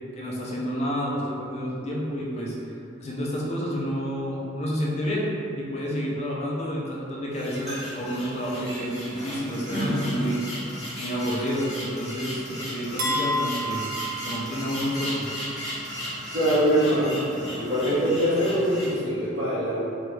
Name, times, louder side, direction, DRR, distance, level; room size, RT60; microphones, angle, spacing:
voice 1, 0.2-2.5 3.0-5.3 5.6-10.4 11.0-13.8 14.2-15.2, equal, 35° left, -4 dB, 0.4 m, -29 dB
sound 1, 7.3-18.9, equal, ahead, 1.0 m, -34 dB
sound 2, 13.0-15.1, equal, 45° right, 0.4 m, -30 dB
voice 2, 16.3-17.2 17.5-19.9, equal, 85° right, -10 dB, 1.1 m, -23 dB
2.7 x 2.2 x 3.1 m, 2.6 s
head